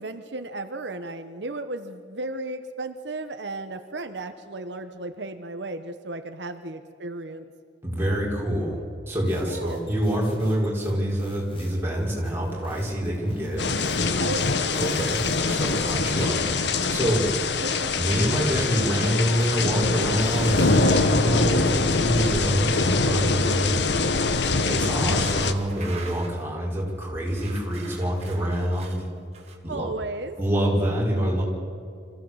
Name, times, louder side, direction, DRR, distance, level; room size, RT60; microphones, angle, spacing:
voice 1, 0.0-7.5 9.4-9.9 14.2-14.7 17.6-17.9 29.7-30.4, right 2 dB, 75° right, 7 dB, 1.0 m, -34 dB
voice 2, 7.8-13.6 14.8-15.2 15.4-16.4 16.9-17.2 18.0-24.0 24.6-29.0 29.6-29.9 30.4-31.4, equal, 10° right, -4 dB, 5.2 m, -26 dB
sound 1, 9.1-16.2, equal, 30° left, 4.3 m, -48 dB
sound 2, 13.6-25.5, left 3 dB, 70° left, 1.2 m, -24 dB
sound 3, 19.4-19.7 20.2-21.1 23.7-23.8 24.3-24.4 25.3-26.5 27.2-29.6, right 4 dB, 35° right, 2.6 m, -45 dB
25.5 x 15.5 x 8.0 m, 2.4 s
head